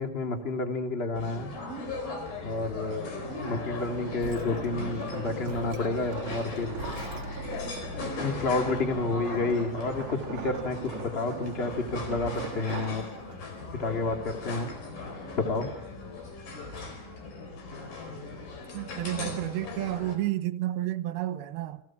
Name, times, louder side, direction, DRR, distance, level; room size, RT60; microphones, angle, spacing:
voice 1, 0.0-1.5 2.4-6.8 8.2-13.1 13.8-14.7 15.4-15.7, left 3 dB, 20° left, 1.9 m, -30 dB
sound 1, 1.1-20.2, left 3 dB, 60° left, 5.7 m, -38 dB
sound 2, 2.7-13.7, right 7 dB, 55° right, 1.7 m, -42 dB
sound 3, 4.2-7.7, right 3 dB, 40° right, 2.1 m, -44 dB
voice 2, 18.7-21.8, right 14 dB, 75° right, 2.9 m, -31 dB
29.0 x 21.5 x 6.0 m
omnidirectional pair, 4.6 m